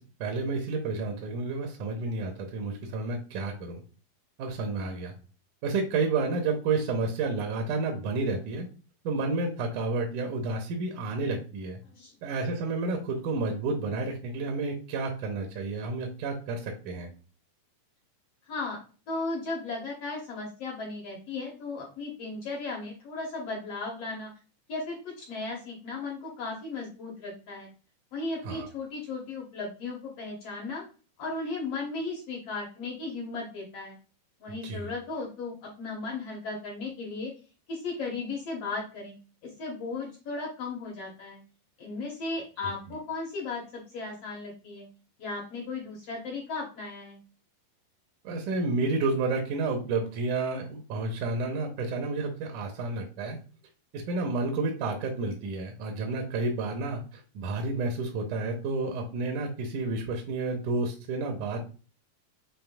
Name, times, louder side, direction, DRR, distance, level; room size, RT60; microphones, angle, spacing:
voice 1, 0.2-3.8 4.4-5.1 5.6-8.7 9.0-11.8 12.2-17.1 28.5-28.7 34.6-34.9 48.2-53.4 53.9-61.6, right 3 dB, 75° right, 2 dB, 1.9 m, -30 dB
voice 2, 18.5-18.8 19.1-24.3 24.7-27.7 28.1-30.8 31.2-34.0 34.4-37.3 37.7-39.2 39.6-41.4 41.8-44.9 45.2-47.2, left 3 dB, 70° left, -1 dB, 1.5 m, -36 dB
7.1 x 3.1 x 2.3 m, 0.36 s
omnidirectional pair, 4.2 m